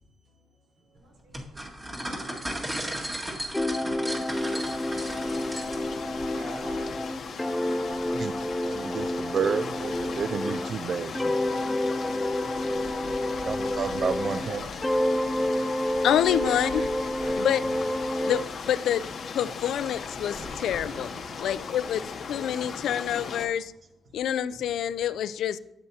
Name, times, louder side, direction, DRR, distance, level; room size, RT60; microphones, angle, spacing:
sound 1, 1.3-6.0, right 1 dB, 20° right, 1.9 m, -35 dB
sound 2, 3.5-10.8 11.1-14.5 14.8-18.5, left 1 dB, 10° left, 0.4 m, -29 dB
sound 3, 3.9-23.5, left 5 dB, 60° left, 0.8 m, -38 dB
voice 1, 5.6-6.0 6.3-7.4 14.2-14.9 16.3-16.9 17.2-17.3 17.7-18.1 20.4-21.3, right 1 dB, 80° right, -2 dB, 4.1 m, -45 dB
voice 2, 8.1-11.5 13.5-14.7 15.9-16.0, right 6 dB, 50° right, 11 dB, 0.3 m, -31 dB
voice 3, 16.0-16.8 17.4-17.6 18.2-19.0 19.3-21.1 21.4-23.7 24.1-25.6, left 10 dB, 85° left, 15 dB, 0.4 m, -27 dB
12.5 x 8.5 x 2.8 m, 0.87 s
cardioid pair, 115°, 0 cm